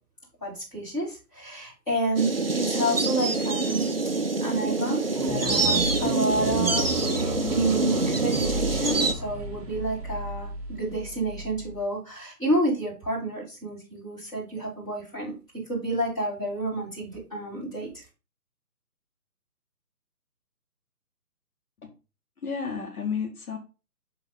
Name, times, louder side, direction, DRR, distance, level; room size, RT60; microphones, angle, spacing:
voice 1, 0.4-3.9 4.4-15.3 15.7-18.0, right 1 dB, 10° left, -11 dB, 3.6 m, -29 dB
sound 1, 2.2-9.1, right 3 dB, 40° right, 0.4 m, -26 dB
sound 2, 5.1-11.8, right 1 dB, 25° right, 1.1 m, -33 dB
voice 2, 22.4-23.6, left 6 dB, 65° left, 1 dB, 1.5 m, -31 dB
6.2 x 3.9 x 4.0 m, 0.31 s
hypercardioid pair, 160°, 47 cm